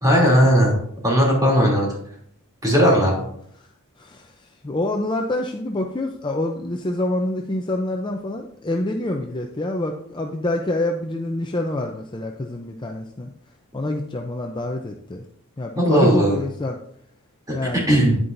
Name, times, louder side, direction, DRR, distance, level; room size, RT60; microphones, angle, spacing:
voice 1, 0.0-0.7 1.0-1.9 2.6-3.2 15.8-16.4 17.5-18.2, equal, 15° right, -3 dB, 2.8 m, -17 dB
voice 2, 4.0-4.3 4.6-13.3 13.7-15.2 15.6-16.8 17.5-18.0, left 1 dB, 20° left, 2 dB, 0.5 m, -26 dB
9.6 x 9.6 x 2.6 m, 0.69 s
head